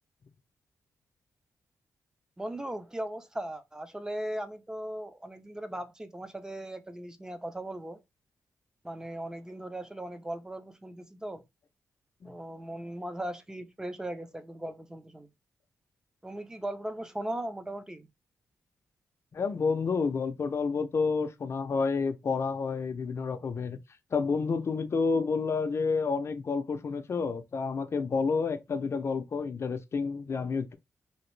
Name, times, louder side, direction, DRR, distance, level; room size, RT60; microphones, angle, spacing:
voice 1, 2.4-8.0 8.8-11.4 12.2-15.3 16.2-18.1, right 1 dB, 10° right, 0.5 m, -38 dB
voice 2, 19.3-23.8 24.1-30.7, left 4 dB, 50° left, 0.5 m, -29 dB
2.9 x 2.6 x 3.2 m
cardioid pair, 90°, 6 cm